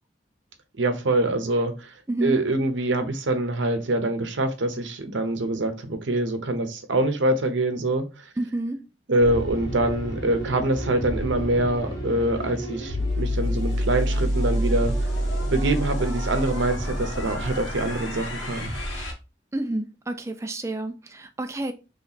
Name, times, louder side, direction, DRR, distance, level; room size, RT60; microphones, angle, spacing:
voice 1, 0.8-1.9 2.2-8.1 9.1-14.9 15.5-18.7, right 2 dB, 75° right, 0.8 m, -24 dB
voice 2, 2.1-2.4 8.4-8.8 19.5-21.7, right 2 dB, 15° right, 0.4 m, -29 dB
sound 1, 9.2-19.1, equal, 75° left, 1.5 m, -28 dB
3.2 x 3.0 x 4.0 m
head